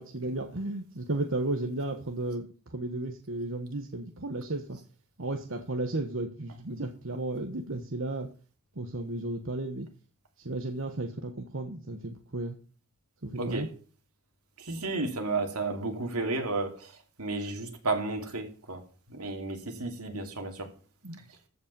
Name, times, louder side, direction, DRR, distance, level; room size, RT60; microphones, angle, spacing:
voice 1, 0.0-2.5 2.7-4.8 5.2-8.3 8.8-9.9 10.4-12.6 13.2-13.7 21.0-21.2, right 2 dB, 60° right, 1.2 m, -34 dB
voice 2, 13.4-13.7 14.6-16.9 17.2-18.8 19.1-20.7, right 3 dB, 85° right, 2.7 m, -32 dB
14.5 x 5.3 x 6.8 m
head